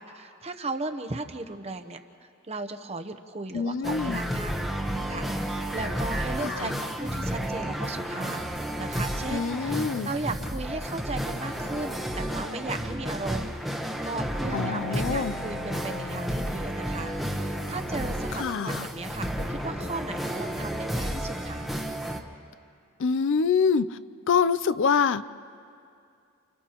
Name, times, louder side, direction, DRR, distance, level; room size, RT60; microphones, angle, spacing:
voice 1, 0.0-4.5 5.1-8.4 8.8-13.8 14.0-21.7, right 3 dB, 30° right, 7 dB, 0.9 m, -36 dB
voice 2, 3.5-4.2 6.4-6.7 9.3-10.1 14.5-15.3 18.3-18.9 23.0-24.0 24.3-25.2, left 6 dB, 55° left, 15 dB, 0.4 m, -25 dB
sound 1, 3.8-22.2, equal, ahead, 1.0 m, -31 dB
29.5 x 29.0 x 3.0 m, 2.4 s
head